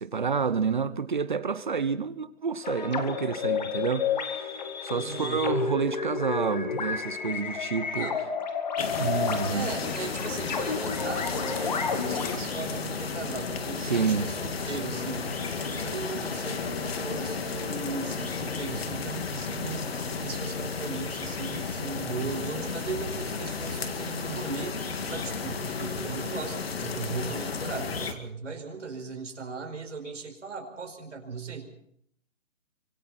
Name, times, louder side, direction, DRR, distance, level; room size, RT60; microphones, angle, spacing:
voice 1, 0.0-4.5 4.8-8.1 9.0-9.7 13.8-14.3, right 5 dB, 35° right, 0.9 m, -29 dB
sound 1, 2.6-12.4, left 6 dB, 35° left, 1.9 m, -31 dB
voice 2, 4.9-5.4 7.9-8.2 9.5-31.7, right 4 dB, 60° right, 5.2 m, -38 dB
sound 2, 8.8-28.1, left 5 dB, 50° left, 2.2 m, -33 dB
25.0 x 24.5 x 4.3 m
hypercardioid pair, 175°, 40 cm